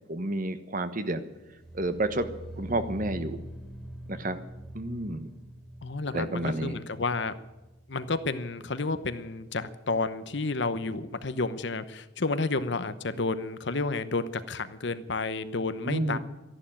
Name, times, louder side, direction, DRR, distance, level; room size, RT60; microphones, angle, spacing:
voice 1, 0.1-1.2 1.7-2.3 2.6-3.4 4.1-4.4 4.7-5.3 6.1-6.8 15.8-16.2, right 2 dB, 45° right, 10 dB, 1.2 m, -30 dB
sound 1, 1.4-8.5 8.7-9.2 9.5-9.6, right 1 dB, ahead, 2.6 m, -44 dB
voice 2, 5.8-7.3 7.9-16.2, left 3 dB, 60° left, 12 dB, 1.0 m, -31 dB
13.5 x 11.5 x 9.0 m, 1.0 s
head